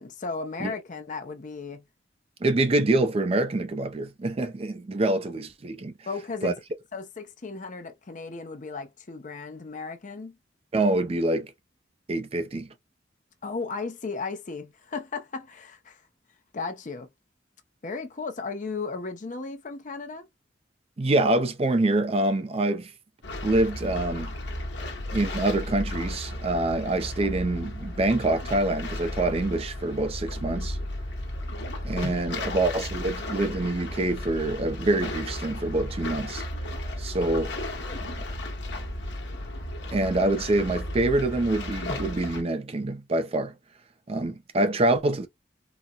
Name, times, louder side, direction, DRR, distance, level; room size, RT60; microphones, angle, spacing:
voice 1, 0.0-1.9 6.1-6.6 6.9-10.4 13.4-16.0 16.5-17.1 17.8-20.3 32.3-32.6 37.8-38.0, left 4 dB, 45° left, 0.6 m, -35 dB
voice 2, 2.4-5.9 6.4-6.5 10.7-11.5 12.1-12.7 21.0-22.9 23.4-24.3 25.1-30.8 31.8-36.5 37.0-37.5 39.9-43.5 44.1-45.3, right 2 dB, 35° right, 0.4 m, -25 dB
sound 1, 23.2-42.4, left 1 dB, 75° left, 1.0 m, -34 dB
4.0 x 2.1 x 2.2 m
head